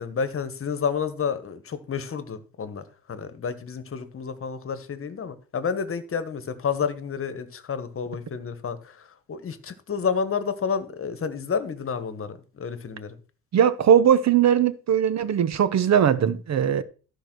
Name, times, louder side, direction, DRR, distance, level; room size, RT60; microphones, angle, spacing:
voice 1, 0.0-2.8 3.1-13.2, left 6 dB, 40° left, 1.4 m, -30 dB
voice 2, 13.5-16.8, right 9 dB, 50° right, 1.0 m, -20 dB
13.5 x 4.9 x 6.2 m
cardioid pair, 125°, 35 cm